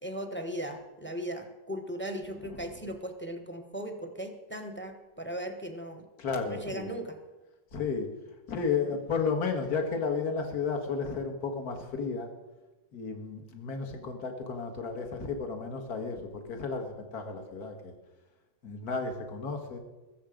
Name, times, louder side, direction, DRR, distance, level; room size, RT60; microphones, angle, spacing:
voice 1, 0.0-6.1 6.5-7.2, equal, 10° left, 6 dB, 0.8 m, -38 dB
voice 2, 6.2-6.9 7.7-8.1 8.5-12.3 12.9-17.9 18.6-19.8, left 5 dB, 50° left, 5 dB, 2.1 m, -33 dB
21.5 x 7.4 x 5.1 m, 1.1 s
omnidirectional pair, 2.1 m